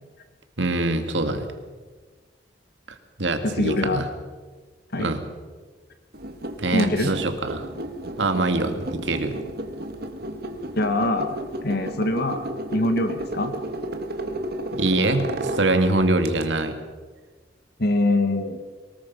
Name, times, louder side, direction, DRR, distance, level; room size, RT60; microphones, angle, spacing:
voice 1, 0.6-1.5 2.9-4.1 5.0-5.2 6.6-7.7 8.2-9.4 14.7-16.8, right 2 dB, 75° right, 7 dB, 2.2 m, -24 dB
voice 2, 3.4-4.0 4.9-5.1 6.7-7.1 10.8-13.5 17.8-18.7, left 2 dB, 60° left, 8 dB, 1.7 m, -24 dB
sound 1, 6.1-16.5, right 1 dB, 60° right, 1.9 m, -33 dB
23.5 x 20.0 x 5.5 m, 1.4 s
head